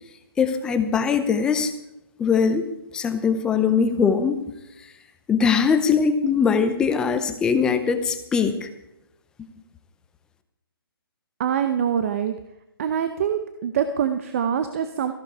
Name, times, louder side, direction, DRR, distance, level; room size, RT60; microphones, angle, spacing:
voice 1, 0.4-1.7 2.2-2.7 2.9-4.5 5.3-8.7, left 6 dB, 5° left, 8 dB, 0.5 m, -21 dB
voice 2, 11.4-12.3 12.8-15.1, right 8 dB, 35° right, 9 dB, 0.7 m, -24 dB
14.0 x 12.0 x 4.6 m, 0.90 s
hypercardioid pair, 165°, 13 cm